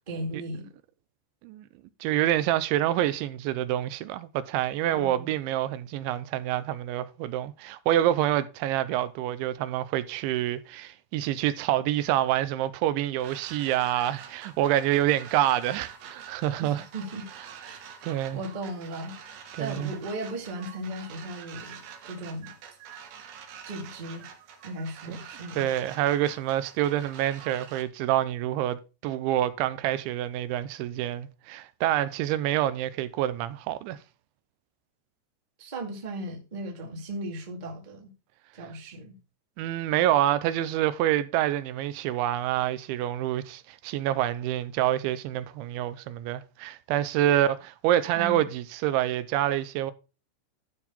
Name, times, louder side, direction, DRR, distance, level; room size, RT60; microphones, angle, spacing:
voice 1, 0.1-0.7 4.9-5.3 16.6-17.3 17.6-22.5 23.6-24.3 24.6-25.7 35.6-38.1 38.5-39.2 48.1-48.4, right 1 dB, 25° right, 1.0 m, -37 dB
voice 2, 2.0-16.8 18.0-18.4 19.6-19.9 25.1-25.2 25.6-34.0 39.6-49.9, right 12 dB, 90° right, 3.1 m, -27 dB
sound 1, 13.2-27.8, right 8 dB, 60° right, 2.9 m, -46 dB
12.0 x 4.7 x 5.5 m
omnidirectional pair, 5.3 m